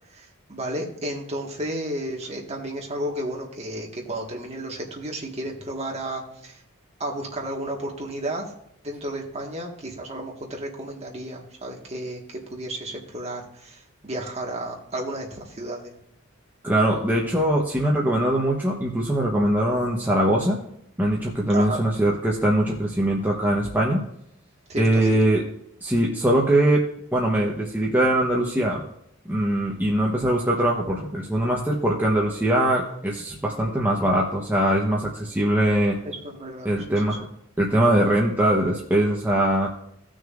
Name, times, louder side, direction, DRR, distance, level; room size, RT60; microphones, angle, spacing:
voice 1, 0.1-6.6 7.0-8.4 8.8-15.9 21.5-21.8 24.7-25.1 36.0-37.2, right 1 dB, 30° right, 0 dB, 1.7 m, -32 dB
voice 2, 16.6-20.6 21.0-24.0 24.8-25.4 25.8-28.8 29.3-36.0 36.6-37.2 37.6-39.7, right 1 dB, 10° right, -4 dB, 1.0 m, -22 dB
17.0 x 6.3 x 2.5 m, 0.75 s
head